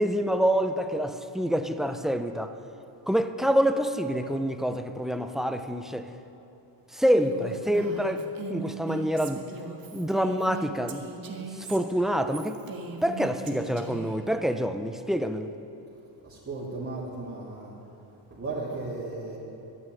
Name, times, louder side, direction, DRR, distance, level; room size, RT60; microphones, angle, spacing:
voice 1, 0.0-2.5 3.1-6.1 6.9-8.2 8.5-9.4 9.9-11.1 11.4-12.6 13.0-15.5, equal, ahead, 8 dB, 0.4 m, -26 dB
Female speech woman speaking, 7.1-14.2, right 4 dB, 50° right, 1.5 m, -39 dB
voice 2, 16.2-17.8 18.3-19.4, right 3 dB, 30° right, -9 dB, 2.4 m, -35 dB
12.5 x 9.3 x 9.0 m, 2.9 s
cardioid pair, 145°, 45 cm